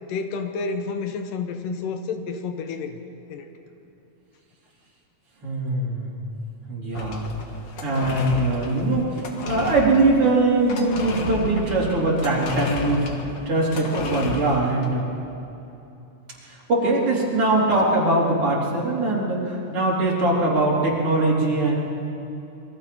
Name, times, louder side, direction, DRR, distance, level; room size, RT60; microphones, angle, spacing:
voice 1, 0.1-3.0 3.3-3.5, left 4 dB, 85° left, 7 dB, 2.8 m, -30 dB
voice 2, 5.4-6.3 6.7-7.2 7.8-13.1 13.5-15.0 16.5-21.8, right 2 dB, 45° right, -5 dB, 4.6 m, -22 dB
sound 1, 6.9-14.9, left 3 dB, 55° left, 2.6 m, -32 dB
27.0 x 22.5 x 4.3 m, 2.9 s
omnidirectional pair, 3.8 m